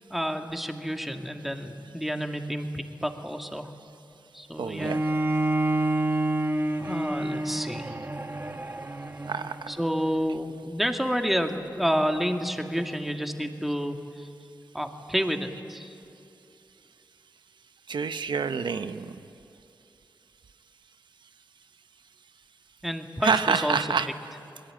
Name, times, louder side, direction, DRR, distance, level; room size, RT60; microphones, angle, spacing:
voice 1, 0.1-3.7 4.3-5.0 6.9-7.9 9.7-14.3 14.7-15.9 22.8-23.8, equal, ahead, 4 dB, 2.3 m, -29 dB
voice 2, 4.6-5.0 9.3-9.5 17.9-19.1 23.2-24.1, right 5 dB, 90° right, 10 dB, 1.0 m, -27 dB
Bowed string instrument, 4.8-10.0, right 1 dB, 30° right, 1.3 m, -28 dB
28.0 x 20.5 x 9.1 m, 2.7 s
cardioid pair, 45°, 8 cm